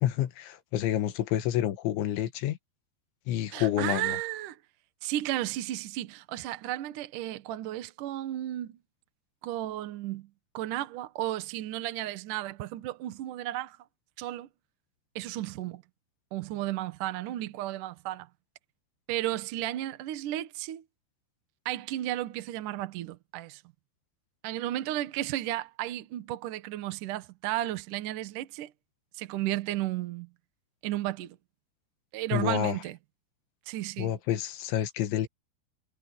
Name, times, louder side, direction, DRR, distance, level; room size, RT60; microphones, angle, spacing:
voice 1, 0.0-2.6 3.3-4.2 32.3-32.8 34.0-35.3, left 12 dB, 90° left, 3.8 m, -28 dB
voice 2, 3.5-4.6 5.0-8.8 9.4-13.8 14.2-14.5 15.2-15.8 16.3-18.3 19.1-20.8 21.7-23.6 24.4-28.7 29.2-30.3 30.8-31.4 32.1-33.0 33.7-34.1, right 14 dB, 65° right, 2.2 m, -33 dB
omnidirectional pair, 5.1 m